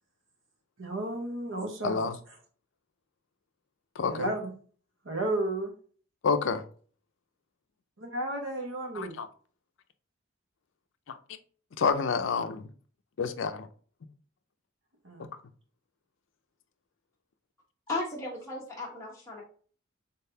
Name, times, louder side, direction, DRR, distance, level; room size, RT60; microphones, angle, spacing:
voice 1, 0.8-2.0 4.1-4.5 5.0-5.7 8.0-9.1 15.0-15.3, right 1 dB, 75° right, 1.1 m, -32 dB
voice 2, 1.8-2.1 4.0-4.3 6.2-6.6 9.0-9.3 11.1-11.2 11.8-12.7 13.2-13.7, left 5 dB, 70° left, 0.4 m, -28 dB
voice 3, 17.9-19.4, left 2 dB, 15° left, 0.9 m, -35 dB
3.8 x 3.5 x 2.7 m
head